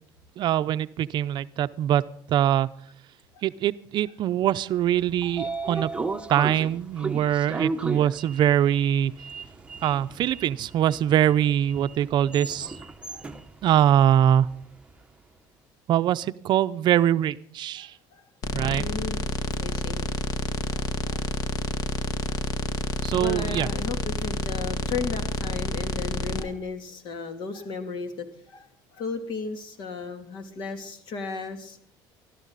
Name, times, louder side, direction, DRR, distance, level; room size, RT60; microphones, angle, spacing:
voice 1, 0.4-2.0 2.3-2.7 3.4-5.9 6.3-9.1 9.8-12.7 13.6-14.5 15.9-17.9 18.5-18.9 23.0-23.7, right 11 dB, 55° right, 13 dB, 0.6 m, -23 dB
Sliding door, 4.8-14.9, right 3 dB, 10° right, 0.9 m, -35 dB
voice 2, 17.8-18.2 18.8-19.2 19.6-20.1 20.7-21.2 22.3-22.4 23.2-28.7 28.9-31.8, left 4 dB, 60° left, 7 dB, 2.8 m, -35 dB
sound 1, 18.4-26.4, left 2 dB, 40° left, 1.4 m, -29 dB
20.0 x 13.0 x 4.0 m, 0.63 s
cardioid pair, 115°, 9 cm